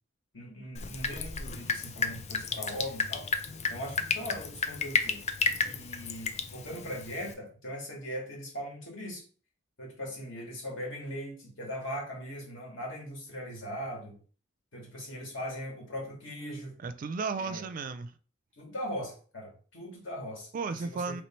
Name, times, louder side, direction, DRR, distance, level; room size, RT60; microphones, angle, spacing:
voice 1, 0.3-3.3 3.7-5.2 5.7-9.2 9.8-14.2 14.7-16.8 17.4-17.6 18.6-21.2, equal, 70° left, 1.7 m, -40 dB
Drip, 0.7-7.3, left 4 dB, 35° left, 0.4 m, -33 dB
voice 2, 16.8-18.1 20.5-21.2, right 4 dB, 45° right, 0.3 m, -34 dB
3.2 x 3.1 x 4.3 m
head